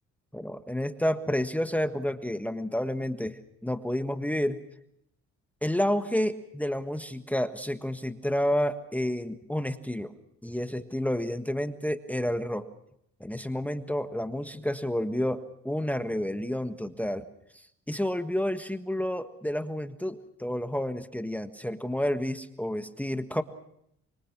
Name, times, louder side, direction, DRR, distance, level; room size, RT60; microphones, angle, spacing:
voice 1, 0.3-4.6 5.6-10.1 10.4-12.7 13.2-17.2 17.5-23.4, equal, 5° left, 9 dB, 1.5 m, -30 dB
25.5 x 25.5 x 5.9 m, 0.76 s
cardioid pair, 90°, 30 cm